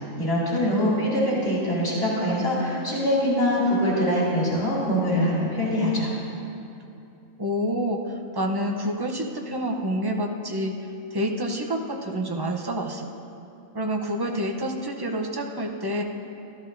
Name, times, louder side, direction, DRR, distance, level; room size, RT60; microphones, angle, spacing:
voice 1, 0.2-6.1, equal, 45° left, -8 dB, 2.8 m, -23 dB
voice 2, 7.4-10.7 11.1-13.1 13.7-16.0, equal, 30° right, 1 dB, 0.4 m, -28 dB
13.5 x 12.5 x 2.6 m, 2.7 s
omnidirectional pair, 1.4 m